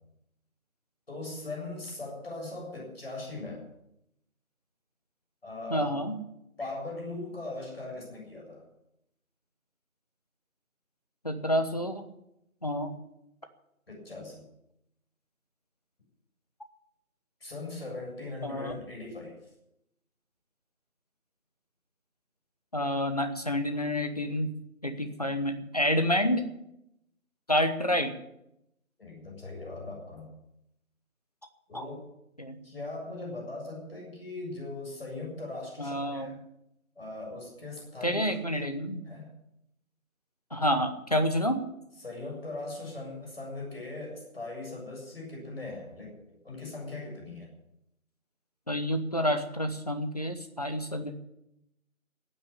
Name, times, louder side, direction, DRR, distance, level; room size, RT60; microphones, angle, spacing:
voice 1, 1.1-3.7 5.4-6.0 6.6-8.6 13.9-14.4 17.4-19.4 29.0-30.3 31.7-32.0 32.6-36.3 37.0-38.2 39.1-39.3 42.0-47.5, left 2 dB, 45° left, -1 dB, 7.4 m, -39 dB
voice 2, 5.7-6.1 11.2-12.0 12.6-12.9 18.4-18.7 22.7-24.5 24.8-26.4 27.5-28.1 31.7-31.8 32.4-32.6 35.8-36.3 38.0-39.0 40.5-41.6 48.7-51.1, equal, 25° left, 7 dB, 1.2 m, -28 dB
14.5 x 9.0 x 9.8 m, 0.82 s
figure-of-eight pair, 170°, 42 cm